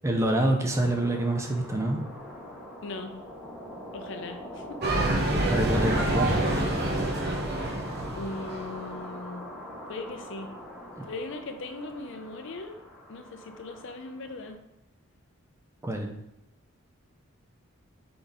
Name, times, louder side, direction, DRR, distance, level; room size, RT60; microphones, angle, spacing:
voice 1, 0.0-2.0 5.4-6.5 10.9-11.1 15.8-16.1, right 1 dB, 15° right, 2 dB, 0.4 m, -26 dB
sound 1, 0.7-14.5, equal, 5° left, 1.2 m, -43 dB
voice 2, 2.8-3.2 3.9-4.8 8.2-9.4 9.9-10.5 11.0-12.8 13.1-14.6, left 2 dB, 55° left, 6 dB, 0.5 m, -39 dB
sound 2, 4.8-8.8, right 1 dB, 50° right, 0.8 m, -27 dB
3.9 x 3.8 x 3.5 m, 0.86 s
head